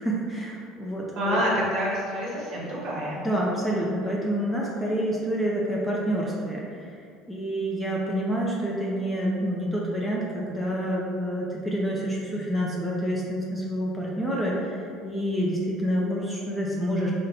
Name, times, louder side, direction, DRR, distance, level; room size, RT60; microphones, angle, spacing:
voice 1, 0.0-1.4 3.2-6.6 7.3-14.8 15.0-17.1, equal, 5° left, -4 dB, 0.5 m, -28 dB
voice 2, 1.1-3.2, equal, 50° right, -5 dB, 1.1 m, -27 dB
3.9 x 2.1 x 4.0 m, 2.3 s
cardioid pair, 135°, 0 cm